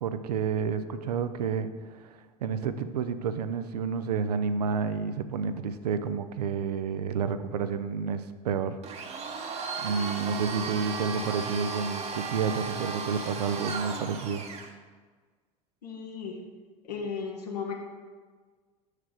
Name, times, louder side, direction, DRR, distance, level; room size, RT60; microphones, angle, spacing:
voice 1, 0.0-2.1 2.4-8.8 9.1-9.3 9.8-14.5, right 6 dB, 85° right, 11 dB, 0.4 m, -30 dB
Domestic sounds home sounds, 8.8-14.7, right 4 dB, 35° right, 0.9 m, -35 dB
voice 2, 15.8-16.4 16.8-17.7, left 6 dB, 85° left, 0 dB, 1.3 m, -35 dB
5.9 x 4.8 x 4.8 m, 1.5 s
hypercardioid pair, 80°, 20 cm